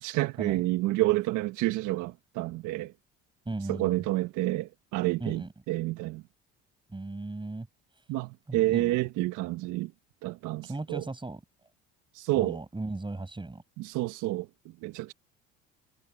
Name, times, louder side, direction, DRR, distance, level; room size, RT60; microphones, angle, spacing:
voice 1, 0.0-2.9 3.7-6.2 8.1-9.9 10.2-11.0 12.1-12.6 13.8-15.1, right 18 dB, 75° right, 1.5 m, -29 dB
voice 2, 3.4-4.0 5.2-5.5 6.9-7.7 8.5-9.0 10.6-11.4 12.3-13.6, right 2 dB, 15° right, 6.7 m, -36 dB
supercardioid pair, 75°, 30 cm